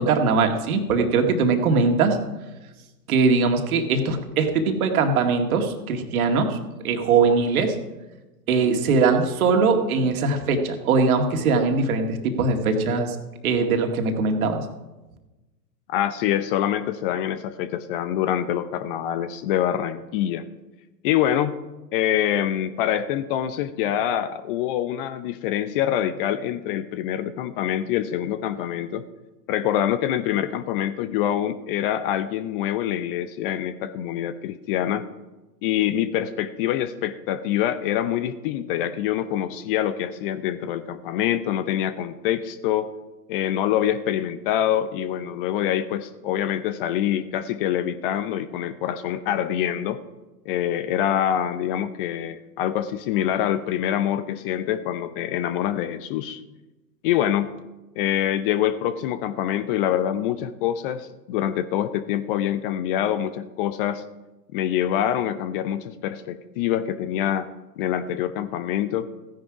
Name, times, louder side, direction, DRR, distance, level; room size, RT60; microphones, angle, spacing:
voice 1, 0.0-2.2 3.1-6.6 6.8-7.8 8.5-13.2 13.4-14.7, right 4 dB, 55° right, 5 dB, 2.1 m, -21 dB
voice 2, 15.9-20.4 21.0-21.6 21.9-29.0 29.5-35.1 35.6-42.9 43.3-50.0 50.5-56.4 57.0-57.5 58.0-64.0 64.5-67.5 67.8-69.1, left 11 dB, 35° left, 13 dB, 0.7 m, -25 dB
15.5 x 10.5 x 4.9 m, 1.1 s
hypercardioid pair, 110°, 50 cm